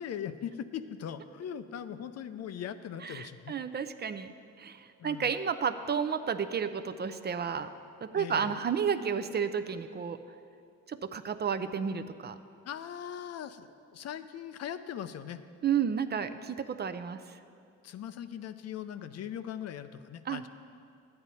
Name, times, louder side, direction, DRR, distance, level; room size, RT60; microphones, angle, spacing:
voice 1, 0.0-3.5 5.0-5.4 8.1-8.6 12.6-15.4 17.8-20.5, left 9 dB, 55° left, 11 dB, 0.5 m, -40 dB
voice 2, 3.0-4.3 4.6-7.7 8.0-10.2 10.9-12.4 15.6-17.4 20.3-20.4, right 7 dB, 35° right, 10 dB, 0.4 m, -32 dB
12.0 x 8.8 x 4.1 m, 2.4 s
cardioid pair, 90°, 30 cm